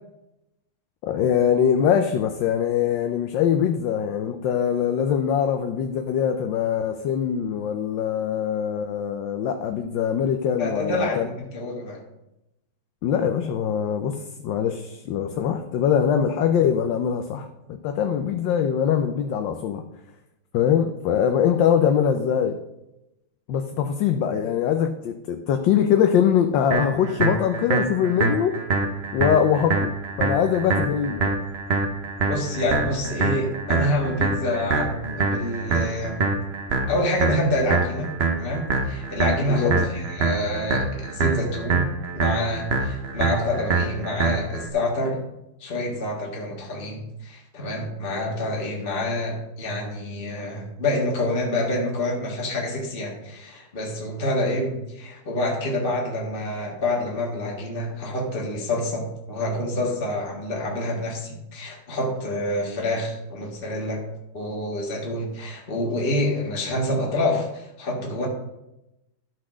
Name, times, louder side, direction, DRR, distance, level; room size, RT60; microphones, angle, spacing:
voice 1, 1.0-11.3 13.0-19.8 20.5-22.6 23.5-28.5 29.1-29.9 30.2-31.3 39.5-39.9, left 8 dB, 75° left, 6 dB, 1.3 m, -23 dB
voice 2, 10.6-12.0 32.3-36.3 36.9-38.1 38.3-41.9 42.1-45.2 45.6-64.0 64.3-68.3, left 1 dB, 30° left, -2 dB, 1.7 m, -27 dB
sound 1, 26.7-44.7, right 4 dB, 50° right, 0.8 m, -25 dB
12.0 x 4.1 x 6.2 m, 0.92 s
omnidirectional pair, 2.2 m